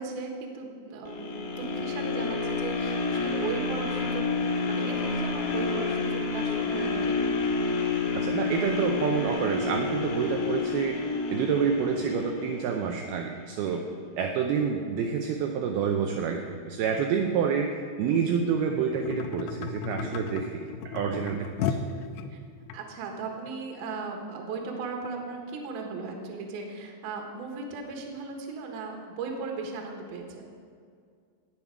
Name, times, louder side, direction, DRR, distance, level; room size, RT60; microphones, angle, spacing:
voice 1, 0.0-4.2 4.6-7.4 7.9-8.1 13.8-14.0 19.9-20.4 22.3-22.4 22.7-30.5, right 4 dB, 65° right, 1 dB, 3.0 m, -37 dB
sound 1, 1.1-13.2 13.7-13.8, left 4 dB, 70° left, 3.4 m, -29 dB
voice 2, 8.1-11.0 11.3-13.9 14.2-21.8, right 6 dB, 85° right, 3 dB, 2.2 m, -28 dB
sound 2, 18.9-22.8 23.5-23.6, left 6 dB, 90° left, 3.1 m, -34 dB
19.0 x 7.3 x 4.7 m, 2.2 s
omnidirectional pair, 5.3 m